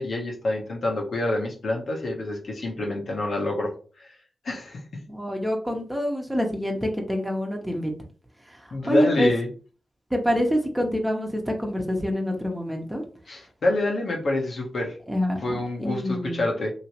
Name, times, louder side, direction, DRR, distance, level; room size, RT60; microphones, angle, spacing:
voice 1, 0.0-3.7 4.0-4.1 4.4-5.0 8.7-9.5 13.3-15.0 15.4-16.7, left 2 dB, 65° left, -1 dB, 1.0 m, -27 dB
voice 2, 5.1-7.9 8.9-9.3 10.1-13.0 15.1-15.4 15.8-16.4, equal, 15° right, 2 dB, 1.1 m, -26 dB
3.0 x 2.8 x 3.0 m, 0.39 s
supercardioid pair, 40°, 0 cm